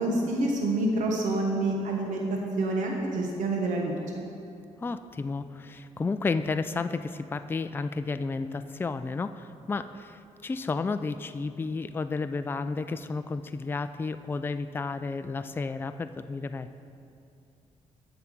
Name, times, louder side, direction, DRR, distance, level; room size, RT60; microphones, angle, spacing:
voice 1, 0.0-2.3 2.6-4.0, right 2 dB, 85° right, 0 dB, 1.1 m, -27 dB
voice 2, 4.8-16.7, left 4 dB, 15° left, 10 dB, 0.3 m, -32 dB
7.9 x 5.8 x 7.6 m, 2.5 s
cardioid pair, 105°, 13 cm